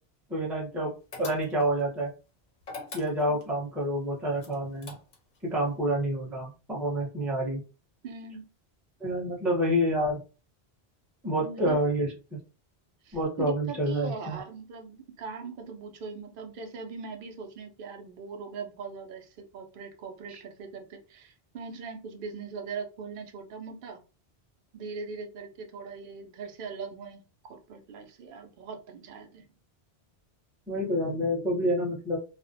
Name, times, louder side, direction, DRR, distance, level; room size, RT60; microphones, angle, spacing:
voice 1, 0.3-0.9 1.2-2.1 2.9-4.9 5.4-7.6 9.0-10.2 11.2-12.4 13.1-14.4 20.3-20.4 30.7-32.2, equal, ahead, -4 dB, 0.6 m, -28 dB
sound 1, 1.1-1.8 2.6-3.5 4.4-5.4, left 3 dB, 50° left, 0.7 m, -42 dB
voice 2, 8.0-8.5 11.4-11.8 13.0-24.0 24.7-29.5, right 5 dB, 60° right, 4 dB, 0.7 m, -40 dB
2.4 x 2.0 x 2.6 m, 0.33 s
omnidirectional pair, 1.1 m